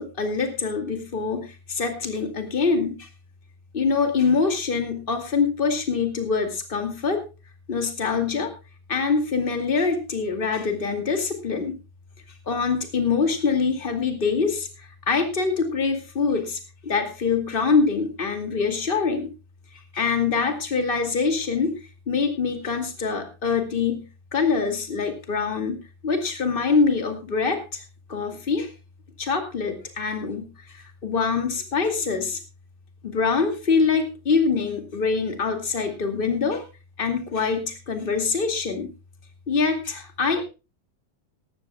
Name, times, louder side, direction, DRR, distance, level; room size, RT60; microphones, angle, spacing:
voice 1, 0.0-3.1 3.7-7.2 7.7-8.5 8.9-11.7 12.5-19.3 19.9-21.8 22.1-24.0 24.3-27.8 28.1-28.7 29.2-32.4 33.0-36.6 37.0-38.9 39.5-40.4, left 5 dB, 25° left, 6 dB, 2.5 m, -24 dB
19.0 x 14.5 x 2.3 m, 0.31 s
omnidirectional pair, 2.2 m